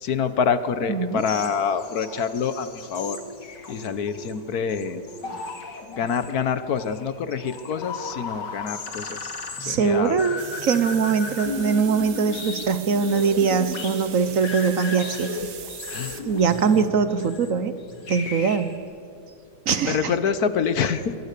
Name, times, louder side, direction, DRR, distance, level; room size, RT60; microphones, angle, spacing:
voice 1, 0.0-3.2 3.7-5.0 6.0-9.3 9.7-10.2 15.9-16.2 19.8-21.2, left 6 dB, 65° left, 12 dB, 1.4 m, -26 dB
voice 2, 0.9-1.3 9.6-15.4 16.2-17.7 18.1-18.7 19.7-20.1, right 6 dB, 55° right, 12 dB, 1.2 m, -22 dB
sound 1, 1.2-18.7, left 4 dB, 90° left, 2.9 m, -36 dB
sound 2, 10.4-16.9, right 8 dB, 75° right, 1.8 m, -41 dB
24.0 x 24.0 x 6.8 m, 2.4 s
omnidirectional pair, 1.8 m